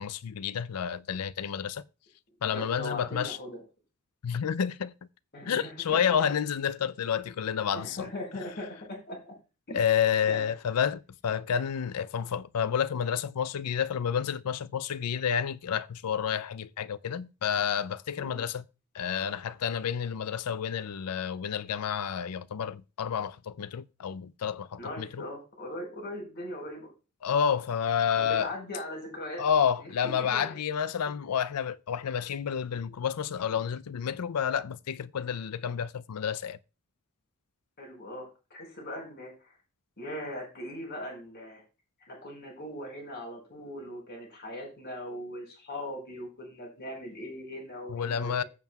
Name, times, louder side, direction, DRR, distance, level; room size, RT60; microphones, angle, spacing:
voice 1, 0.0-1.8 2.4-3.4 4.2-4.9 5.5-8.1 9.7-18.6 18.9-25.3 27.2-28.5 29.4-36.6 47.9-48.4, left 8 dB, 90° left, 0.5 m, -30 dB
voice 2, 2.4-3.6 5.3-5.7 6.0-6.2 7.7-9.3 9.7-9.8 10.3-10.5 18.2-18.4 24.8-26.9 28.1-29.4 29.8-29.9 30.2-30.6 31.0-31.1 33.5-33.6 37.8-39.5 40.0-41.6 42.0-48.5, left 1 dB, 50° left, 5.0 m, -40 dB
15.0 x 7.3 x 2.3 m
head